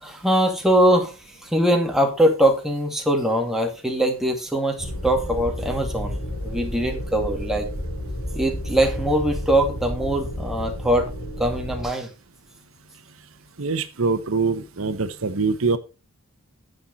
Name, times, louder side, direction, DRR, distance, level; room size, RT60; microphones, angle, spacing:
voice 1, 0.0-7.7 8.4-12.1, right 1 dB, ahead, 2 dB, 2.1 m, -22 dB
sound 1, 4.8-11.9, left 1 dB, 75° left, 4.5 m, -31 dB
voice 2, 13.6-15.8, right 4 dB, 85° right, 12 dB, 0.9 m, -24 dB
10.0 x 7.9 x 4.0 m, 0.30 s
head